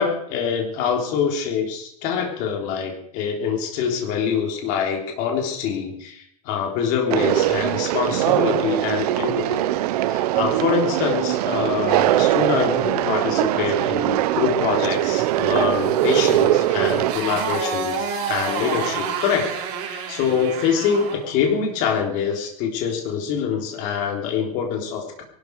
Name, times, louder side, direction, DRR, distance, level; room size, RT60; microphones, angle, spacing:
voice 1, 0.0-9.7 10.1-19.5 19.9-25.2, left 7 dB, 40° left, 2 dB, 3.5 m, -25 dB
Conversation, 7.1-17.1, right 14 dB, 80° right, 1.0 m, -21 dB
Motorcycle, 15.2-21.3, right 6 dB, 45° right, 4.1 m, -29 dB
23.0 x 12.0 x 4.8 m, 0.70 s
supercardioid pair, 175°, 20 cm